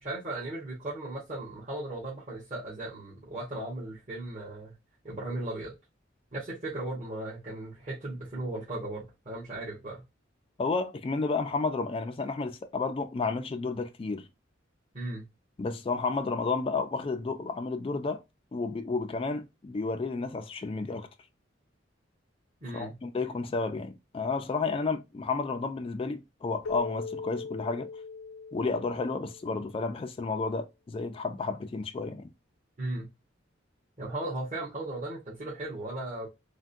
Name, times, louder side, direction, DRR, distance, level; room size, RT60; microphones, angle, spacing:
voice 1, 0.0-4.7 5.0-5.7 6.3-10.0 14.9-15.3 22.6-23.0 32.8-33.1 34.0-36.3, right 2 dB, 40° right, 1.3 m, -36 dB
voice 2, 10.6-14.3 15.6-18.2 18.5-21.1 22.7-27.9 28.5-32.3, left 4 dB, 30° left, 0.3 m, -31 dB
Keyboard (musical), 26.7-29.9, left 4 dB, 90° left, 0.5 m, -40 dB
3.4 x 2.2 x 2.5 m
head